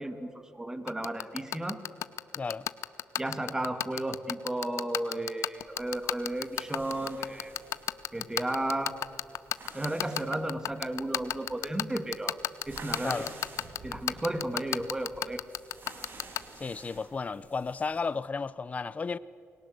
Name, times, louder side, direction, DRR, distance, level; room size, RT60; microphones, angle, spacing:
voice 1, 0.0-1.8 3.2-7.5 8.1-8.9 9.7-12.4 12.7-13.3 13.8-15.4, right 1 dB, 15° right, 2.1 m, -33 dB
sound 1, 0.9-16.4, left 11 dB, 80° left, 0.8 m, -30 dB
sound 2, 5.6-18.2, right 3 dB, 50° right, 5.3 m, -51 dB
voice 2, 16.6-19.2, left 4 dB, 30° left, 0.5 m, -33 dB
28.5 x 21.5 x 8.0 m
cardioid pair, 90°, 5 cm